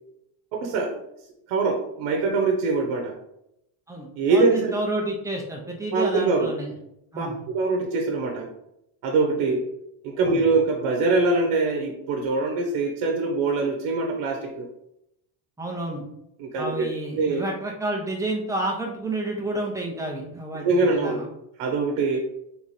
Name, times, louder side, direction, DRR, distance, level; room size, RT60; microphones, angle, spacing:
voice 1, 0.5-1.0 1.5-3.2 4.2-4.7 5.9-6.5 7.2-8.5 9.0-9.7 10.0-14.7 16.4-16.9 17.1-17.4 20.5-21.2 21.6-22.2, right 3 dB, 80° right, 2 dB, 0.9 m, -23 dB
voice 2, 3.9-6.7 7.1-7.4 10.2-10.4 15.6-16.0 16.6-21.3, right 2 dB, 5° right, -2 dB, 0.7 m, -30 dB
3.7 x 3.0 x 4.1 m, 0.81 s
cardioid pair, 140°, 49 cm